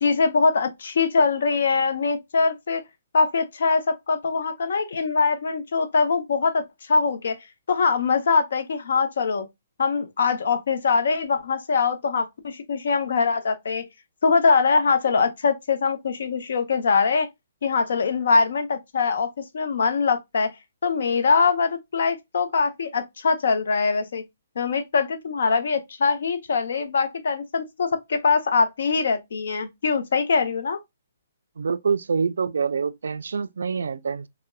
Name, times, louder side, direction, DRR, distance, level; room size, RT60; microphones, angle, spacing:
voice 1, 0.0-2.8 3.1-6.6 6.9-7.4 7.7-9.5 9.8-13.8 14.2-17.3 17.6-19.3 19.5-20.5 20.8-24.2 24.6-30.8, left 4 dB, 65° left, 0.7 m, -22 dB
voice 2, 31.6-34.3, right 5 dB, 85° right, 0.3 m, -26 dB
4.1 x 2.1 x 2.2 m
hypercardioid pair, 170°, 0 cm